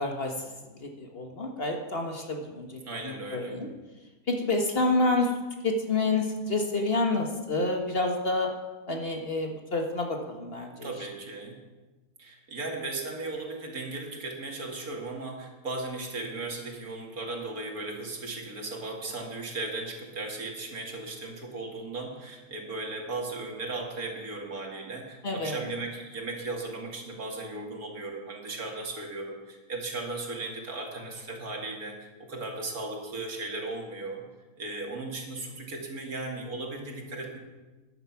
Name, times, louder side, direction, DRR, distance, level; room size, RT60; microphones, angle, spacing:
voice 1, 0.0-3.7 4.3-8.5 8.9-11.1 25.2-25.7, left 2 dB, 40° left, 3 dB, 1.6 m, -29 dB
voice 2, 2.8-3.6 10.8-11.6 12.2-34.2 34.6-37.4, right 2 dB, 70° right, 1 dB, 2.7 m, -36 dB
14.5 x 10.5 x 5.9 m, 1.2 s
omnidirectional pair, 1.6 m